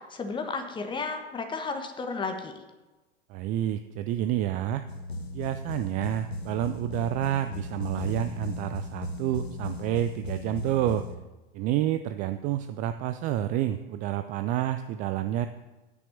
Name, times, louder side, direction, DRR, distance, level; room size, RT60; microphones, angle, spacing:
voice 1, 0.1-2.5, left 4 dB, 15° left, 5 dB, 1.3 m, -33 dB
voice 2, 3.3-4.8 5.3-11.1 11.5-15.5, right 12 dB, 25° right, 10 dB, 0.4 m, -29 dB
sound 1, 4.9-11.2, left 1 dB, 80° left, 1.2 m, -36 dB
9.7 x 5.8 x 7.0 m, 1.2 s
figure-of-eight pair, 90°, 31 cm